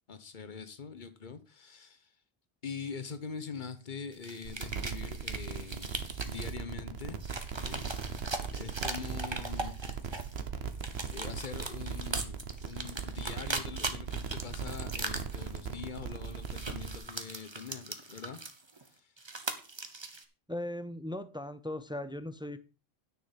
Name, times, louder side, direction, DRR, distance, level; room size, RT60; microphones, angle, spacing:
voice 1, 0.1-2.1 2.6-7.2 7.5-8.0 8.5-10.0 11.1-18.4 18.8-19.1, left 5 dB, 50° left, 1.1 m, -43 dB
sound 1, 4.1-6.5 7.0-10.4 10.7-18.9 19.2-20.2, right 3 dB, 25° right, 1.0 m, -40 dB
sound 2, 4.4-17.0, right 6 dB, 75° right, 1.2 m, -39 dB
voice 2, 20.5-22.6, left 1 dB, 10° right, 0.3 m, -38 dB
9.6 x 6.7 x 5.2 m
omnidirectional pair, 1.1 m